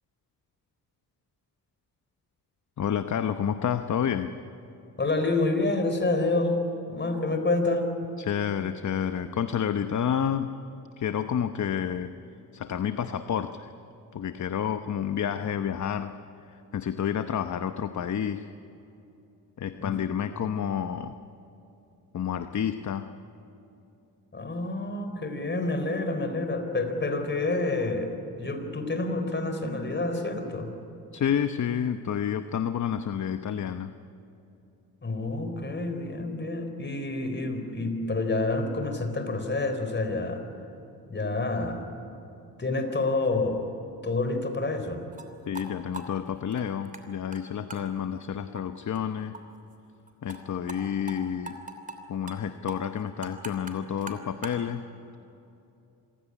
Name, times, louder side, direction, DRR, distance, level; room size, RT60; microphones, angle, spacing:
voice 1, 2.8-4.3 8.2-10.5 11.0-12.1 12.5-13.7 14.1-18.5 19.6-21.2 22.1-23.1 31.1-33.9 45.5-49.3 50.2-51.6 52.1-54.8, left 8 dB, 50° left, 9 dB, 0.9 m, -29 dB
voice 2, 5.0-6.6 6.9-7.9 19.8-19.9 24.3-28.1 28.4-30.7 35.0-40.5 41.1-41.9 42.6-43.7 44.0-45.0, left 2 dB, 30° left, 7 dB, 4.0 m, -28 dB
sound 1, 45.1-45.3 45.5-45.7 45.9-47.0 47.3-47.4 47.7-47.8 48.2-48.3 48.5-48.6 49.0-49.1 49.3-49.4 49.7-49.8 50.1-50.4 50.7-50.8 51.1-51.2 51.5-52.0 52.3-52.4 52.7-54.6, right 3 dB, 20° right, 3.0 m, -41 dB
26.5 x 16.0 x 9.9 m, 2.8 s
cardioid pair, 80°, 37 cm